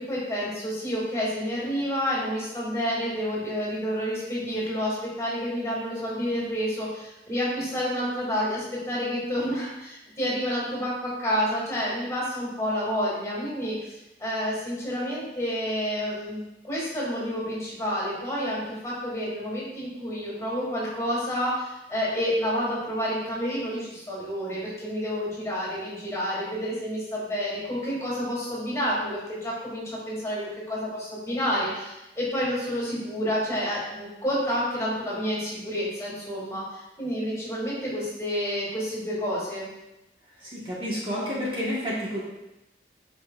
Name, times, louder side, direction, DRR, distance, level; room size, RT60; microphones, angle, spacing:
voice 1, 0.0-39.7, equal, 15° left, -6 dB, 2.5 m, -29 dB
voice 2, 40.4-42.2, equal, 30° right, -7 dB, 1.4 m, -30 dB
9.5 x 5.4 x 2.5 m, 0.95 s
head